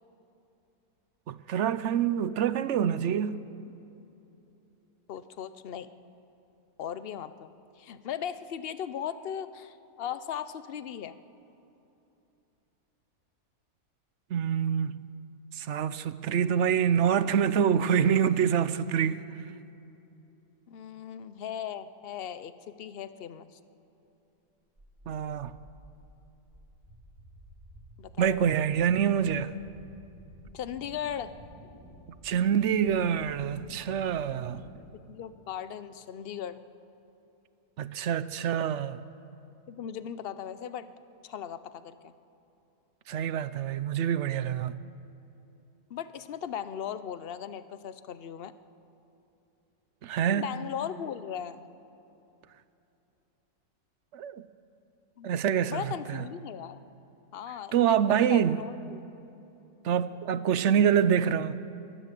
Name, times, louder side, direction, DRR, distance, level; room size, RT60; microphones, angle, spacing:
voice 1, 1.3-3.4 14.3-15.0 15.5-19.2 25.1-25.5 28.2-29.5 32.2-34.6 37.8-39.0 43.1-44.8 50.0-50.5 54.1-54.3 55.2-56.2 57.7-58.6 59.8-61.6, right 8 dB, 60° right, 0.8 m, -26 dB
voice 2, 5.1-5.9 6.8-11.2 20.7-23.6 28.0-28.6 30.5-31.3 35.1-36.6 39.7-40.9 41.2-42.1 45.9-48.5 50.3-51.7 55.2-55.3 55.6-56.8 57.3-59.2, left 9 dB, 50° left, 0.7 m, -38 dB
sound 1, 24.8-34.7, right 1 dB, 20° right, 3.0 m, -52 dB
22.5 x 15.5 x 7.6 m
omnidirectional pair, 1.7 m